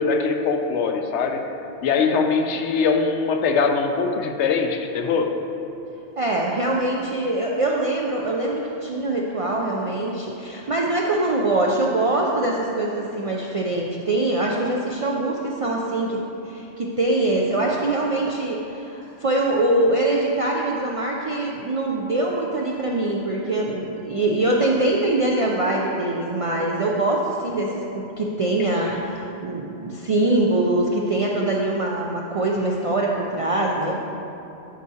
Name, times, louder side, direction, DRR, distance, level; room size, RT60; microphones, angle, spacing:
voice 1, 0.0-1.5 1.8-5.3 28.8-29.0, left 5 dB, 80° left, 5 dB, 0.9 m, -22 dB
voice 2, 6.2-16.2 16.5-34.0, right 2 dB, 60° right, -2 dB, 0.3 m, -23 dB
11.0 x 4.7 x 2.8 m, 2.9 s
omnidirectional pair, 1.2 m